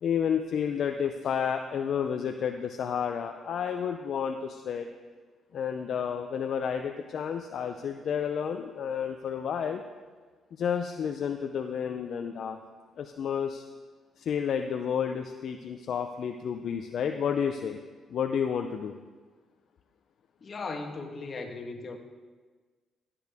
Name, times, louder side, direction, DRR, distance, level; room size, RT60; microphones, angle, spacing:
voice 1, 0.0-4.9 5.5-9.8 10.6-12.6 13.0-13.6 14.2-17.8 18.1-18.9, left 7 dB, 65° left, 6 dB, 0.5 m, -31 dB
voice 2, 20.4-22.0, left 3 dB, 45° left, 4 dB, 1.4 m, -37 dB
15.5 x 8.5 x 3.5 m, 1.4 s
cardioid pair, 90°, 0 cm